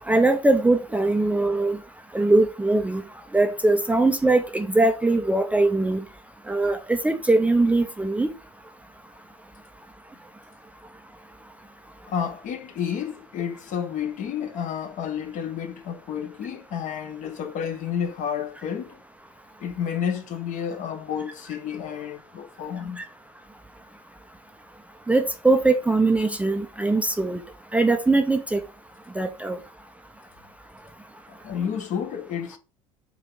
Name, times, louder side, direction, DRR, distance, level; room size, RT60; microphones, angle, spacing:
voice 1, 0.1-1.8 2.1-3.0 3.3-6.0 6.5-8.3 23.0-23.1 25.1-27.4 27.7-28.6 29.2-29.6, right 2 dB, 5° right, 0.5 m, -21 dB
voice 2, 12.1-19.0 19.6-23.0 31.3-32.6, left 8 dB, 40° left, 0.7 m, -30 dB
4.0 x 2.7 x 4.5 m
figure-of-eight pair, 65°, 19 cm